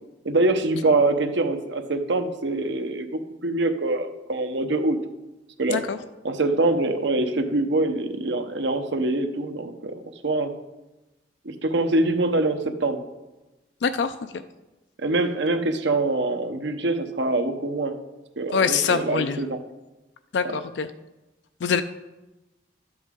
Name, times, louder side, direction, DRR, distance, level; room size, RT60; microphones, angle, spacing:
voice 1, 0.2-3.1 3.4-5.0 5.6-5.8 6.2-10.5 11.4-13.0 15.0-18.0 18.4-19.6 20.4-20.6, right 2 dB, 85° right, 7 dB, 0.9 m, -24 dB
voice 2, 13.8-14.4 18.5-19.4 20.3-20.9 21.6-21.8, left 6 dB, 75° left, 9 dB, 0.4 m, -24 dB
12.5 x 7.9 x 3.7 m, 1.1 s
head